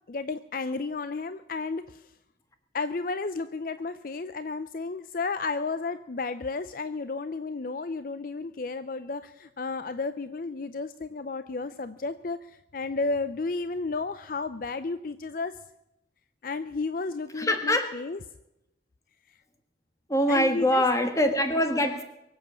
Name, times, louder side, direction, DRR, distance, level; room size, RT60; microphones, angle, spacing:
voice 1, 0.1-2.1 2.7-15.6 16.4-18.2 20.3-20.8, left 3 dB, 50° left, 12 dB, 0.5 m, -32 dB
voice 2, 17.3-17.9 20.1-22.0, left 1 dB, 20° left, 6 dB, 1.6 m, -24 dB
23.5 x 7.8 x 7.0 m, 0.88 s
head